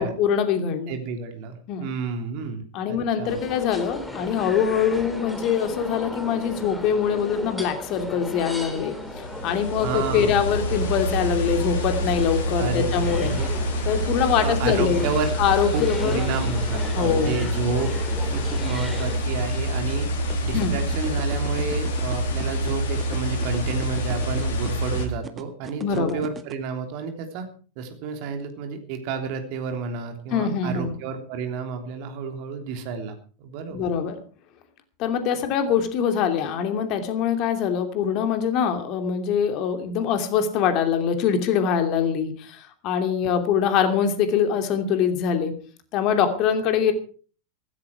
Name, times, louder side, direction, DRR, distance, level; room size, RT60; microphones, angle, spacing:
voice 1, 0.0-0.9 1.7-1.9 2.7-13.4 13.8-15.1 15.4-16.2 16.9-17.5 20.5-20.8 25.8-26.2 30.3-30.9 33.7-34.2 35.0-45.5 45.9-46.9, left 7 dB, 40° left, 7 dB, 2.7 m, -23 dB
voice 2, 0.9-3.4 9.8-10.6 12.6-13.5 14.4-15.3 15.7-17.9 18.2-20.1 20.4-27.4 27.8-33.9, right 5 dB, 45° right, 6 dB, 3.3 m, -31 dB
sound 1, 3.2-19.2, left 1 dB, 5° left, 3.2 m, -36 dB
sound 2, 9.0-25.0, equal, 55° left, 3.7 m, -26 dB
sound 3, 20.3-26.5, right 6 dB, 20° right, 1.7 m, -38 dB
16.0 x 15.5 x 4.7 m, 0.40 s
figure-of-eight pair, 90°, 0 cm